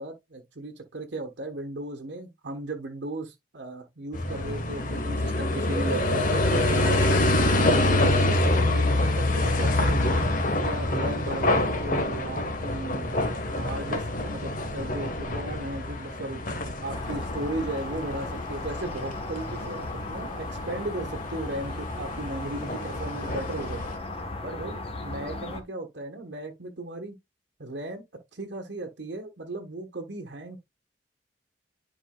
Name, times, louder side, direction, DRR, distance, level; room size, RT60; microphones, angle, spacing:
voice 1, 0.0-7.2 7.7-10.1 10.6-16.4 16.8-23.8 24.4-27.2 27.6-28.0 28.3-30.6, right 2 dB, 70° right, 1.2 m, -36 dB
sound 1, 4.1-24.0, left 1 dB, 50° left, 1.4 m, -26 dB
sound 2, 16.8-25.6, left 2 dB, 30° left, 1.1 m, -36 dB
10.5 x 4.8 x 2.3 m
head